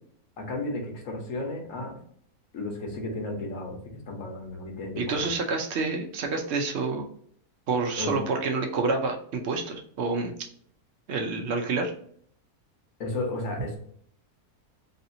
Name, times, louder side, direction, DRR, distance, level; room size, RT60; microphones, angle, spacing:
voice 1, 0.4-2.0 2.5-3.8 4.1-5.3 8.0-8.2 13.0-13.8, left 2 dB, 60° left, 0 dB, 1.3 m, -33 dB
voice 2, 5.0-7.0 7.7-10.3 11.1-11.9, right 4 dB, 65° right, 3 dB, 0.7 m, -28 dB
3.2 x 2.7 x 2.6 m, 0.62 s
omnidirectional pair, 1.6 m